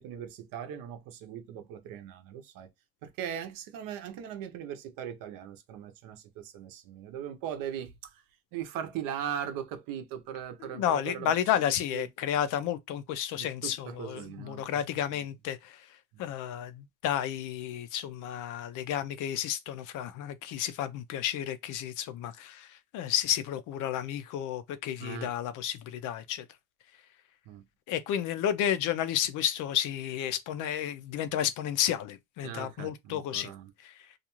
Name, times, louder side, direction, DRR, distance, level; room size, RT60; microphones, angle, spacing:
voice 1, 0.0-2.7 3.0-7.9 8.5-11.3 11.6-12.1 13.4-14.6 16.1-16.3 25.0-25.3 27.5-27.6 32.4-33.7, right 9 dB, 65° right, 0.7 m, -39 dB
voice 2, 10.6-26.4 27.9-33.5 33.8-33.9, left 10 dB, 55° left, 0.5 m, -32 dB
2.5 x 2.3 x 2.9 m
cardioid pair, 120°, 37 cm